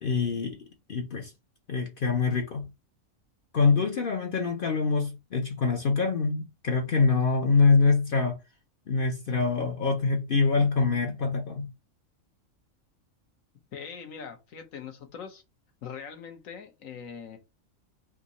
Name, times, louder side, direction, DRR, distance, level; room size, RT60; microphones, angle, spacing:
voice 1, 0.0-0.6 0.9-1.3 1.7-2.7 3.5-8.4 8.9-11.7, left 4 dB, 55° left, 0.7 m, -25 dB
voice 2, 13.7-15.4 15.8-17.4, left 7 dB, 75° left, 1.3 m, -41 dB
3.6 x 2.7 x 4.0 m
omnidirectional pair, 1.4 m